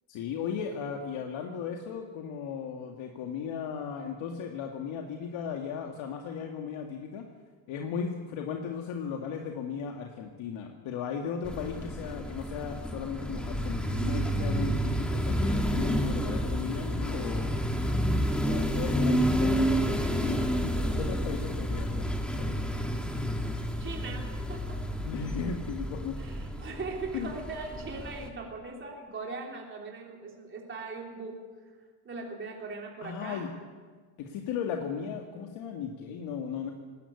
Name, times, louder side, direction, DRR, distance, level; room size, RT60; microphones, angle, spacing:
voice 1, 0.1-7.3 7.7-17.6 18.4-22.1 22.3-22.7 25.0-26.2 27.1-27.3 33.0-33.5 34.2-36.7, left 7 dB, 75° left, 2 dB, 2.1 m, -36 dB
sound 1, 11.4-28.3, equal, ahead, 1.5 m, -30 dB
voice 2, 23.8-24.8 26.2-31.5 32.0-33.4, right 3 dB, 25° right, -1 dB, 3.2 m, -40 dB
20.0 x 18.0 x 8.3 m, 1.5 s
cardioid pair, 170°, 47 cm